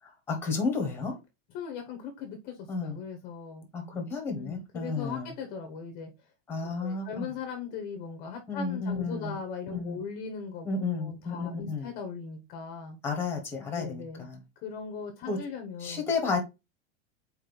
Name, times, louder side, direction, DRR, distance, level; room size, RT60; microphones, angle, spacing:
voice 1, 0.0-1.2 2.7-3.0 3.7-5.3 6.5-7.3 8.5-9.4 9.7-10.0 10.6-11.9 13.0-14.4 15.2-15.4 15.8-16.4, left 4 dB, 5° left, 1.3 m, -32 dB
voice 2, 1.5-3.7 4.3-6.1 6.8-10.7 11.0-13.0 13.7-14.3 14.6-16.0, left 6 dB, 25° left, 1.0 m, -39 dB
4.5 x 4.4 x 5.2 m
supercardioid pair, 175°, 35 cm